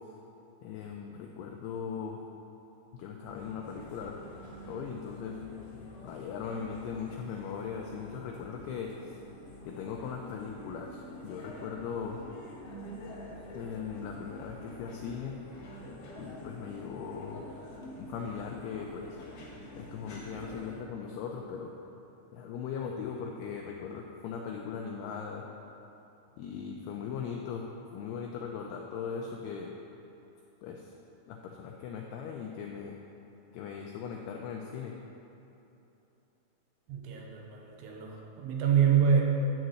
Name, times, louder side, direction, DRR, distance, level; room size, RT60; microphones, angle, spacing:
voice 1, 0.6-2.2 2.9-4.3 4.7-5.4 6.0-9.2 9.7-12.2 13.6-15.4 16.2-17.5 18.0-19.2 19.8-21.7 22.3-25.5 26.4-27.7 27.9-29.7 30.6-30.9 31.3-33.0 33.5-34.9, left 6 dB, 90° left, 1 dB, 2.3 m, -39 dB
sound 1, 3.2-20.7, left 1 dB, 70° left, 1.4 m, -47 dB
voice 2, 36.9-39.2, right 7 dB, 85° right, 0 dB, 3.2 m, -26 dB
10.5 x 4.0 x 7.6 m, 2.9 s
omnidirectional pair, 5.3 m